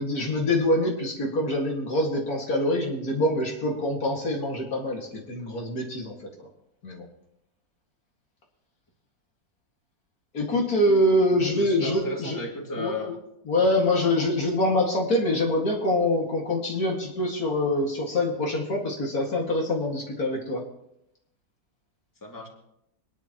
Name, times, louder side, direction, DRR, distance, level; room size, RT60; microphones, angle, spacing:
voice 1, 0.0-6.4 6.8-7.1 10.3-12.4 12.8-12.9 13.5-20.6, left 1 dB, 60° left, -1 dB, 2.5 m, -25 dB
voice 2, 11.3-13.1 22.2-22.5, left 2 dB, 10° left, -1 dB, 2.3 m, -34 dB
26.0 x 10.5 x 3.0 m, 0.80 s
omnidirectional pair, 1.8 m